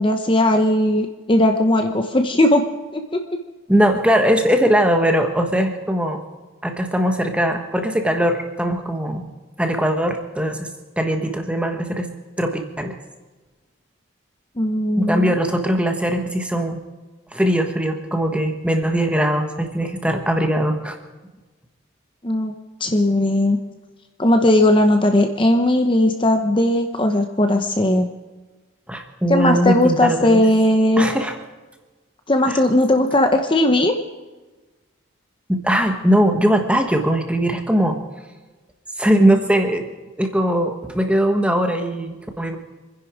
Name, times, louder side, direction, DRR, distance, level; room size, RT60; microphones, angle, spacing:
voice 1, 0.0-2.6 2.9-3.2 14.6-15.3 22.2-22.5 22.8-23.6 24.2-28.1 29.3-31.1 32.3-33.9, left 1 dB, 25° left, 5 dB, 0.8 m, -17 dB
voice 2, 3.7-6.2 6.6-9.3 9.6-10.7 11.0-12.1 12.4-13.0 15.0-16.8 17.3-21.0 28.9-30.4 31.0-31.4 32.5-32.6 35.5-38.0 39.0-39.9 40.2-42.6, equal, 5° right, 5 dB, 1.2 m, -20 dB
26.5 x 10.5 x 5.0 m, 1.2 s
head